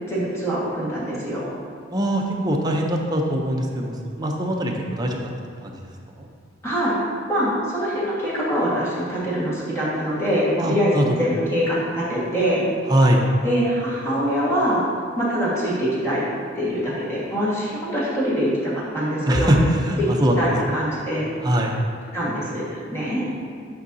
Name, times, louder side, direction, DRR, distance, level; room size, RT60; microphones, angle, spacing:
voice 1, 0.1-1.5 6.6-6.9 7.3-12.6 13.4-14.8 15.2-16.3 16.5-19.5 20.0-20.1 20.4-21.3 22.1-23.2, equal, 15° left, -8 dB, 1.6 m, -24 dB
voice 2, 1.9-5.3 5.6-5.8 6.2-6.3 10.6-11.2 12.9-13.2 19.3-20.5 21.4-21.8, right 1 dB, 20° right, 0 dB, 0.6 m, -22 dB
9.1 x 5.4 x 2.7 m, 2.2 s
head